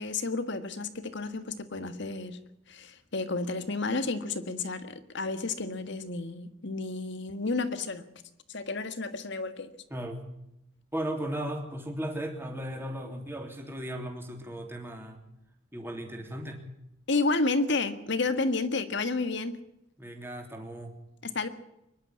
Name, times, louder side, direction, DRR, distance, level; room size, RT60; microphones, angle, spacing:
voice 1, 0.0-2.4 2.7-8.1 8.5-9.7 17.1-19.6 21.2-21.5, left 3 dB, 60° left, 10 dB, 1.7 m, -31 dB
voice 2, 9.9-10.3 10.9-15.2 15.7-16.6 20.0-20.9, right 1 dB, 10° right, 3 dB, 3.2 m, -36 dB
23.5 x 11.5 x 9.6 m, 0.86 s
head